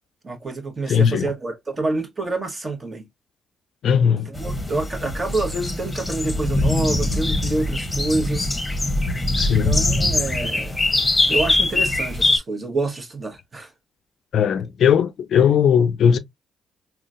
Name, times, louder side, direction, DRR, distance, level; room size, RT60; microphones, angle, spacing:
voice 1, 0.2-3.0 4.2-8.5 9.6-10.9 11.3-13.7, right 2 dB, 35° right, 1.2 m, -27 dB
voice 2, 0.9-1.3 3.8-4.3 9.4-9.8 14.3-16.2, left 8 dB, 65° left, 0.4 m, -18 dB
sound 1, 4.3-12.4, left 2 dB, 20° left, 0.9 m, -22 dB
3.7 x 2.3 x 2.4 m
supercardioid pair, 55°, 0 cm